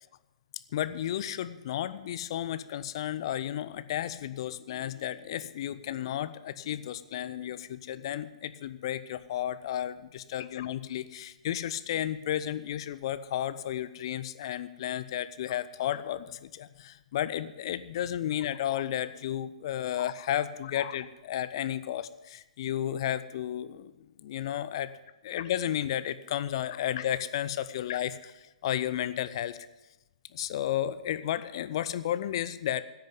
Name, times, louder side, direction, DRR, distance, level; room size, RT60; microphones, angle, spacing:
voice 1, 0.7-23.9 24.2-24.9 25.2-29.6 30.3-32.8, left 11 dB, 45° left, 14 dB, 0.6 m, -33 dB
10.5 x 9.0 x 9.5 m, 1.0 s
figure-of-eight pair, 120°, 4 cm